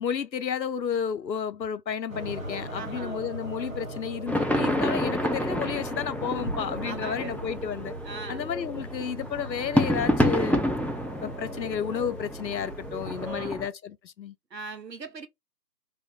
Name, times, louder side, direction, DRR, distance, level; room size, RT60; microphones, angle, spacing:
voice 1, 0.0-7.9 8.3-10.6 11.2-14.3, left 7 dB, 90° left, 0.7 m, -32 dB
sound 1, 2.1-13.4, right 1 dB, 55° right, 1.0 m, -39 dB
voice 2, 2.8-3.2 6.8-7.4 8.0-8.5 13.3-13.6 14.5-15.3, right 4 dB, 80° right, 0.9 m, -40 dB
sound 2, 4.3-13.7, equal, 5° left, 0.4 m, -29 dB
3.3 x 2.1 x 4.2 m
figure-of-eight pair, 180°, 50 cm